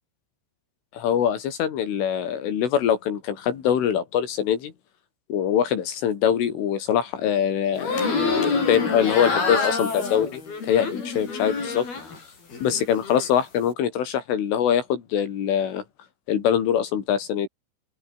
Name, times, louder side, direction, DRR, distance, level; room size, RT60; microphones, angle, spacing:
voice 1, 0.9-4.7 5.3-8.0 8.4-11.9 12.6-15.8 16.3-17.5, left 9 dB, 75° left, 5.5 m, -23 dB
sound 1, 7.8-12.2 12.5-13.3, left 4 dB, 50° left, 9.5 m, -27 dB
open air
omnidirectional pair, 5.7 m